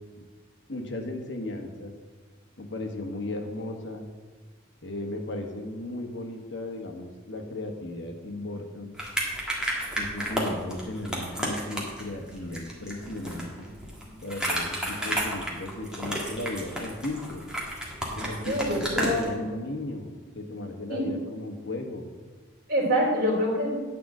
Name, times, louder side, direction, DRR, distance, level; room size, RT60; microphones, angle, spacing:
voice 1, 0.7-1.9 2.6-4.1 4.8-9.0 10.0-13.7 14.2-17.4 18.1-20.1 20.3-22.1, left 2 dB, 60° left, 3 dB, 1.3 m, -35 dB
sound 1, 9.0-19.3, equal, 5° right, 1.6 m, -33 dB
voice 2, 18.4-19.4 20.9-21.0 22.7-23.7, equal, 45° right, -3 dB, 3.3 m, -25 dB
9.0 x 4.9 x 7.5 m, 1.4 s
head